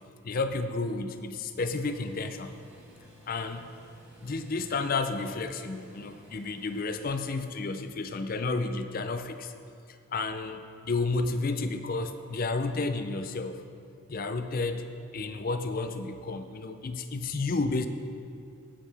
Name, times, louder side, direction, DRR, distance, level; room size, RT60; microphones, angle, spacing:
voice 1, 0.2-2.5 3.3-3.7 4.2-9.5 10.1-13.6 14.1-14.9 15.1-17.9, left 3 dB, 40° left, 9 dB, 0.4 m, -31 dB
sound 1, 1.6-7.1, right 1 dB, 10° right, 2.0 m, -53 dB
17.0 x 6.5 x 3.4 m, 2.4 s
head